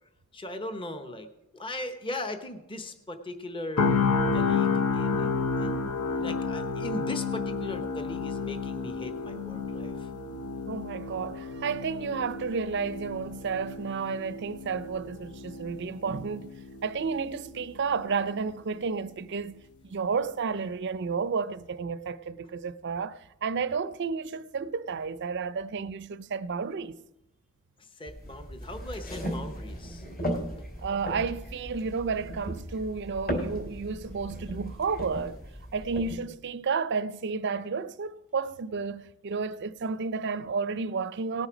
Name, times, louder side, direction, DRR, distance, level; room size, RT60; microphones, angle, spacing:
voice 1, 0.3-1.3 1.5-3.9 4.3-10.1 27.8-30.1, left 1 dB, 25° left, 0.9 m, -39 dB
sound 1, 3.8-17.8 18.1-18.3, left 4 dB, 80° left, 0.9 m, -31 dB
voice 2, 10.7-16.5 16.8-27.0 30.8-35.4 35.7-41.5, right 5 dB, 50° right, 0.5 m, -32 dB
sound 2, 28.1-36.2, equal, 40° left, 3.1 m, -36 dB
18.5 x 8.1 x 5.1 m
head